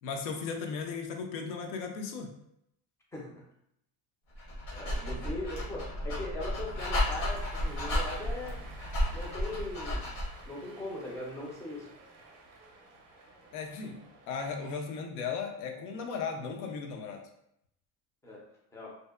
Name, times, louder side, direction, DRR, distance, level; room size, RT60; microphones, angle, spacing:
voice 1, 0.0-2.3 13.5-14.0 14.3-17.2, left 5 dB, 85° left, 4 dB, 0.6 m, -36 dB
voice 2, 3.1-3.4 4.7-8.6 9.1-10.1 10.5-11.9 18.2-18.4 18.7-19.0, left 2 dB, 10° left, -3 dB, 0.3 m, -40 dB
Dog, 4.3-10.4, left 1 dB, 65° left, 0.9 m, -33 dB
Cheering, 7.1-14.8, right 3 dB, 40° right, 0.5 m, -53 dB
2.7 x 2.1 x 2.3 m, 0.75 s
cardioid pair, 155°, 36 cm